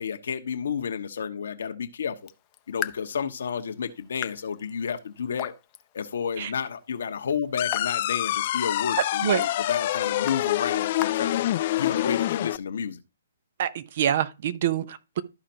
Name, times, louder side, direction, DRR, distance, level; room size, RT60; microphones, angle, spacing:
voice 1, 0.0-2.2 2.7-5.5 5.9-11.4 11.8-13.0, left 7 dB, 70° left, 1.1 m, -31 dB
Raindrop / Drip, 2.1-12.0, left 14 dB, 30° left, 0.7 m, -42 dB
sound 1, 7.6-12.6, left 14 dB, 45° left, 0.3 m, -26 dB
voice 2, 13.6-15.2, right 10 dB, 50° right, 0.9 m, -26 dB
13.0 x 5.0 x 2.9 m
hypercardioid pair, 130°, 0 cm